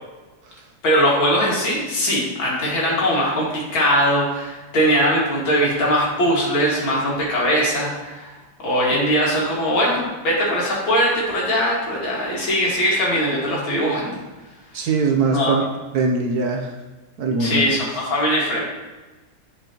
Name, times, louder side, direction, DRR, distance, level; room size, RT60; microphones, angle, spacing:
voice 1, 0.8-8.3 8.6-14.1 15.3-15.6 17.4-17.9 18.1-18.6, equal, 85° left, -4 dB, 2.7 m, -20 dB
voice 2, 14.7-15.7 15.9-16.8 17.2-17.8, right 4 dB, 65° right, 2 dB, 1.0 m, -22 dB
10.0 x 5.1 x 2.9 m, 1.2 s
omnidirectional pair, 2.1 m